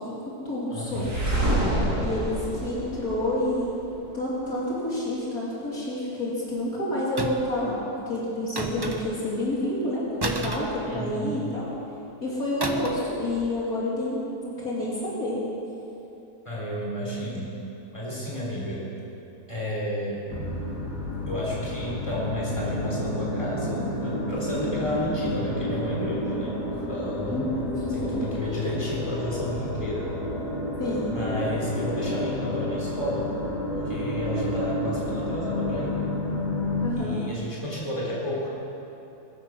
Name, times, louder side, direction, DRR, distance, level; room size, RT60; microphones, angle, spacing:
voice 1, 0.0-1.1 1.4-1.5 2.0-3.7 4.1-11.7 12.2-15.4 27.3-28.3 30.8-31.1 36.8-37.2, left 1 dB, 60° left, -7 dB, 3.4 m, -29 dB
voice 2, 0.7-1.1 10.9-11.4 16.5-17.5 17.9-18.9 19.5-20.2 21.3-27.5 27.9-30.1 31.1-33.3 33.7-36.0 37.0-38.5, left 1 dB, 20° left, -5 dB, 4.0 m, -31 dB
sound 1, 0.9-3.9, right 1 dB, 75° right, 4.0 m, -27 dB
sound 2, 7.2-7.6 8.6-9.3 10.2-11.4 12.6-13.1 13.4-13.6, right 2 dB, 20° right, 0.7 m, -32 dB
sound 3, 20.3-36.9, left 1 dB, 85° left, 2.8 m, -30 dB
22.0 x 10.0 x 6.4 m, 2.9 s
omnidirectional pair, 1.7 m